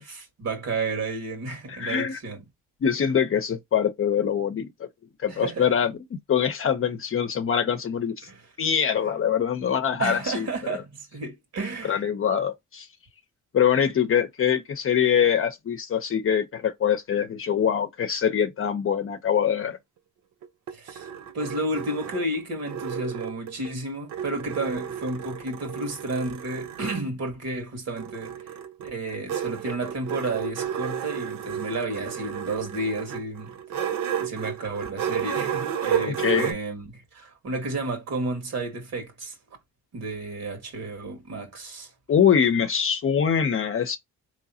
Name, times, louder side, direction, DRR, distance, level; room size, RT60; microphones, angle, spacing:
voice 1, 0.1-2.4 5.3-5.7 8.2-8.4 10.0-12.0 20.7-21.1 21.3-28.4 28.8-33.5 33.8-39.4 39.9-41.9, right 2 dB, 60° right, 1.9 m, -32 dB
voice 2, 1.7-2.2 2.8-4.9 5.2-5.9 6.3-8.3 8.6-10.5 11.9-12.9 13.5-19.8 36.0-36.5 42.1-44.0, left 8 dB, 45° left, 0.7 m, -24 dB
sound 1, 20.4-23.7 24.1-27.0 28.0-36.5, right 9 dB, 90° right, 0.9 m, -32 dB
3.8 x 3.1 x 2.7 m
cardioid pair, 90°, 30 cm